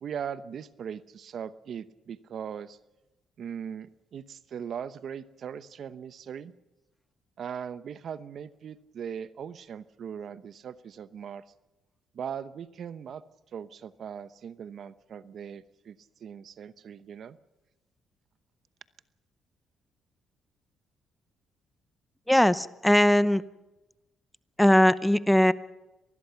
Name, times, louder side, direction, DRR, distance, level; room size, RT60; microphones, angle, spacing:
voice 1, 0.0-2.8 3.4-6.5 7.4-11.4 12.1-13.2 13.5-17.4, right 8 dB, 60° right, 14 dB, 0.9 m, -39 dB
voice 2, 22.3-23.4 24.6-25.5, left 1 dB, 5° left, 15 dB, 0.7 m, -20 dB
25.5 x 20.0 x 5.8 m, 1.0 s
cardioid pair, 90°, 0 cm